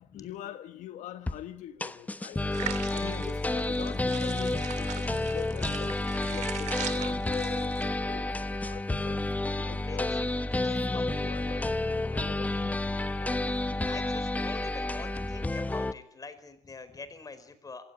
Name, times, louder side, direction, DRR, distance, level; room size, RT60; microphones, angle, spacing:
voice 1, 0.0-2.4 2.9-7.8 8.1-8.3 8.6-10.3 10.6-13.9, left 12 dB, 80° left, 1.3 m, -44 dB
sound 1, 1.3-1.4 1.8-15.9, left 2 dB, 10° left, 1.1 m, -30 dB
sound 2, 2.5-7.8, right 10 dB, 70° right, 2.6 m, -40 dB
voice 2, 2.8-3.2 9.8-10.0 10.9-11.1 13.8-17.9, left 4 dB, 30° left, 4.8 m, -45 dB
27.5 x 17.0 x 9.9 m
cardioid pair, 105°, 13 cm